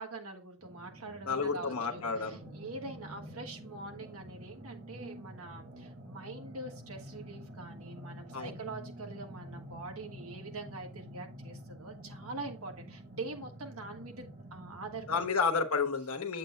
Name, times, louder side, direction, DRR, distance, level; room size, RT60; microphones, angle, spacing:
voice 1, 0.0-15.3, right 3 dB, 75° right, 3 dB, 1.5 m, -44 dB
sound 1, 0.6-15.3, equal, 45° right, 1.2 m, -48 dB
voice 2, 1.3-2.4 8.3-8.5 15.1-16.4, left 5 dB, 85° left, 6 dB, 1.1 m, -31 dB
7.7 x 7.3 x 2.2 m, 0.33 s
head